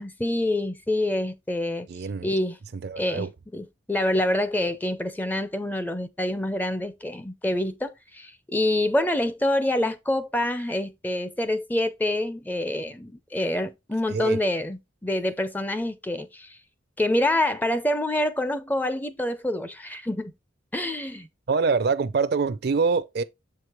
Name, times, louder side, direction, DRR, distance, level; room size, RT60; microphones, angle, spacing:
voice 1, 0.0-1.9 2.2-2.6 3.0-3.3 3.5-16.6 17.0-20.3 20.7-21.3, left 1 dB, 10° left, 0.4 m, -26 dB
voice 2, 1.9-2.3 2.7-3.3 14.1-14.4 21.5-23.2, right 4 dB, 55° right, 0.4 m, -25 dB
7.1 x 4.7 x 3.0 m
head